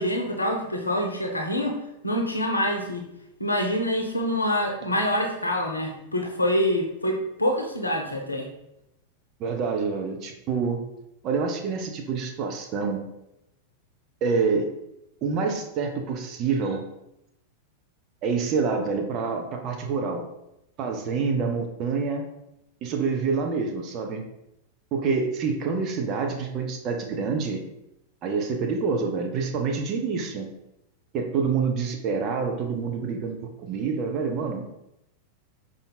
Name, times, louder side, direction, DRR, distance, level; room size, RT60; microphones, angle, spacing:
voice 1, 0.0-1.8 2.0-3.1 3.4-8.5, equal, 80° left, 2 dB, 0.6 m, -26 dB
voice 2, 9.4-10.8 11.2-13.0 14.2-14.7 15.2-16.8 18.2-20.2 20.8-22.2 22.8-24.2 24.9-27.6 28.2-30.5 31.1-34.6, right 5 dB, 35° right, 3 dB, 0.5 m, -27 dB
5.0 x 2.5 x 2.2 m, 0.85 s
figure-of-eight pair, 90°, 0 cm